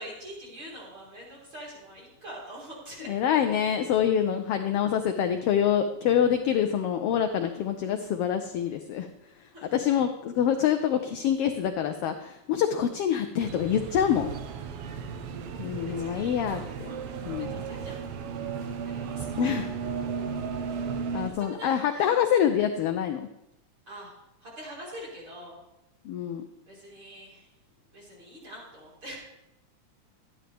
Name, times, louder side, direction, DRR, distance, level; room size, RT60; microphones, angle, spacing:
voice 1, 0.0-3.1 7.3-8.0 9.5-9.7 14.6-15.3 15.7-16.4 17.0-18.0 18.8-19.5 20.7-22.2 23.9-24.1 24.4-25.5 26.7-27.5 27.9-29.2, equal, 40° right, -6 dB, 4.7 m, -45 dB
voice 2, 3.1-9.1 9.7-14.3 15.6-16.9 17.3-17.6 19.4-19.7 21.1-23.3 26.0-26.4, left 9 dB, 80° left, 6 dB, 1.3 m, -26 dB
sound 1, 13.4-21.3, right 6 dB, 70° right, 1.4 m, -35 dB
12.0 x 10.5 x 3.4 m, 0.88 s
omnidirectional pair, 3.3 m